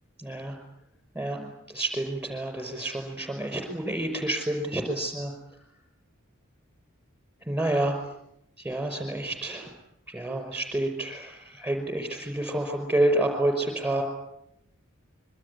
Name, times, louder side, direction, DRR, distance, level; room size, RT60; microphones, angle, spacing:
voice 1, 0.2-0.5 1.1-5.3 7.5-8.0 8.6-9.7 10.1-14.0, right 1 dB, 5° right, 5 dB, 5.3 m, -29 dB
25.5 x 24.0 x 8.4 m, 0.76 s
head